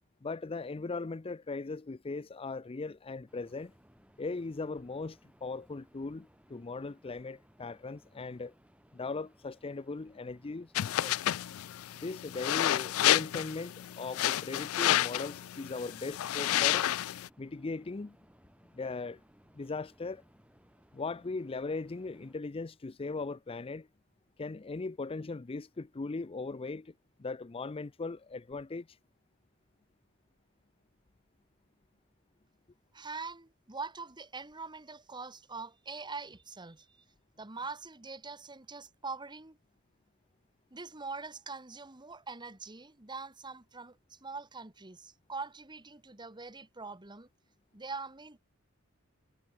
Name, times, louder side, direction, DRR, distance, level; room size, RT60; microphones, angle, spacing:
voice 1, 0.2-3.7 4.2-8.5 8.9-11.2 12.0-16.9 17.4-18.2 18.7-19.2 19.5-20.2 20.9-23.9 24.4-26.9 27.2-28.9, left 3 dB, 25° left, 0.5 m, -39 dB
sound 1, 3.3-22.4, equal, 5° right, 4.9 m, -63 dB
sound 2, 10.8-17.3, left 13 dB, 90° left, 0.4 m, -30 dB
voice 2, 32.9-37.0 37.4-39.6 40.7-47.3 47.7-48.4, right 4 dB, 20° right, 1.6 m, -43 dB
head